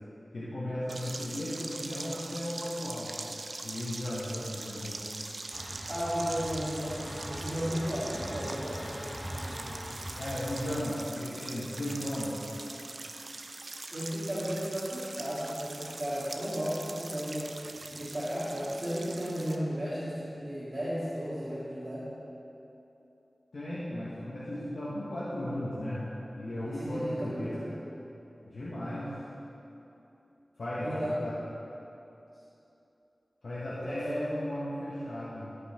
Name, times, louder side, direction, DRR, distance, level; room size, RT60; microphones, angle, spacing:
voice 1, 0.3-3.1 3.6-5.0 10.2-12.4 23.5-27.6 28.4-29.1 30.6-31.4 33.4-35.6, left 1 dB, 75° left, -8 dB, 1.5 m, -35 dB
sound 1, 0.9-19.6, right 2 dB, 60° right, 0.6 m, -42 dB
sound 2, 5.5-10.8, equal, 5° left, 1.3 m, -40 dB
voice 2, 5.9-8.9 13.9-17.6 17.8-22.1 26.6-27.8 30.8-31.3 33.7-34.6, equal, 30° right, -11 dB, 2.1 m, -34 dB
16.5 x 5.7 x 4.4 m, 2.9 s
wide cardioid pair, 85°, 0 cm